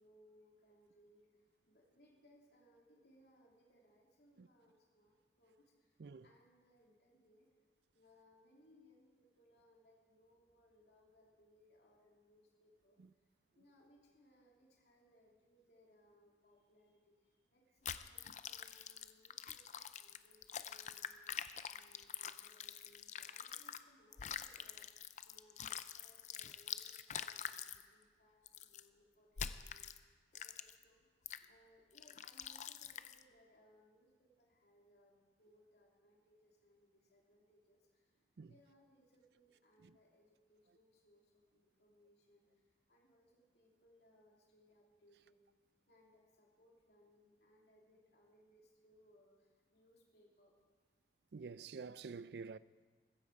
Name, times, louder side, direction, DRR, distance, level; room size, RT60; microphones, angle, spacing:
voice 1, 0.0-7.5 7.9-13.2 13.5-31.1 31.5-38.1 38.4-45.4 45.9-50.6, equal, 65° left, 3.0 m, -69 dB
sound 1, 17.8-23.8 24.1-27.8 28.5-28.8 29.4-30.0 30.3-30.8 31.3-31.4 32.0-33.2, left 9 dB, 40° left, 0.5 m, -46 dB
voice 2, 51.3-52.6, right 5 dB, 70° right, 0.4 m, -48 dB
15.0 x 15.0 x 4.9 m
head